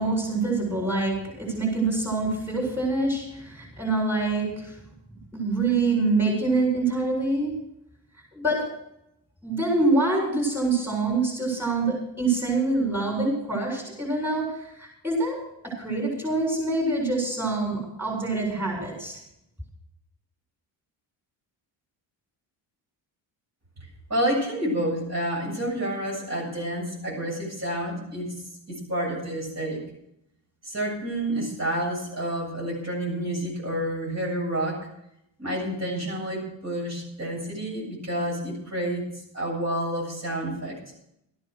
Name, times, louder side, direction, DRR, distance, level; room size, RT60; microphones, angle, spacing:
voice 1, 0.0-4.8 5.3-7.6 8.3-8.7 9.4-19.2, right 3 dB, 5° right, -2 dB, 7.6 m, -25 dB
voice 2, 24.1-28.3 28.7-29.8 30.6-34.9 35.4-40.8, right 1 dB, 35° right, -2 dB, 7.7 m, -29 dB
14.5 x 11.0 x 6.4 m, 0.79 s
cardioid pair, 105°, 44 cm